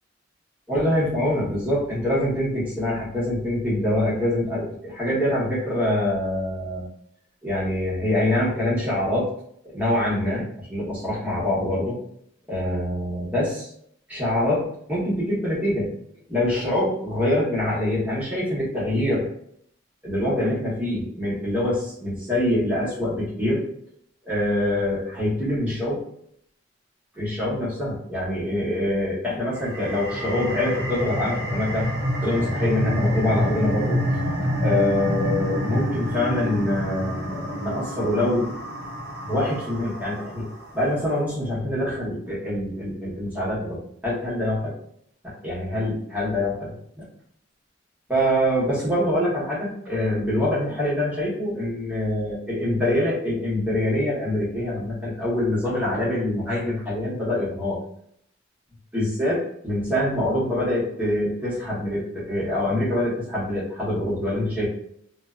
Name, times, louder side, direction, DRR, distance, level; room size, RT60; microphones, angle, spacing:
voice 1, 0.7-6.9 7.4-9.3 9.6-12.0 12.5-13.7 14.1-15.9 16.3-19.3 20.0-23.6 24.2-26.0 27.2-31.9 32.2-34.2 34.6-38.5 39.2-40.5 40.7-44.7 45.2-47.1 48.1-57.8 58.9-64.7, left 1 dB, 10° right, -8 dB, 1.1 m, -25 dB
sound 1, 29.5-40.7, equal, 60° right, 0.7 m, -28 dB
2.7 x 2.2 x 2.4 m, 0.68 s
head